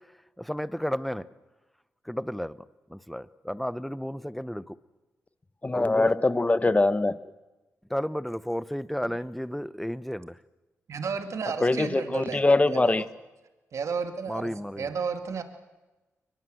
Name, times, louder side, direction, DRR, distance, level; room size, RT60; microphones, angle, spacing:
voice 1, 0.4-1.3 2.0-2.6 2.9-4.8 5.7-6.1 7.9-10.4 14.3-14.9, equal, ahead, 17 dB, 0.9 m, -32 dB
voice 2, 5.6-7.2 11.6-13.0, left 2 dB, 25° left, 15 dB, 1.2 m, -23 dB
voice 3, 10.9-12.4 12.7-13.1 13.7-14.5 14.8-15.4, right 5 dB, 65° right, 7 dB, 2.2 m, -32 dB
23.0 x 20.5 x 7.9 m, 1.1 s
supercardioid pair, 50°, 6 cm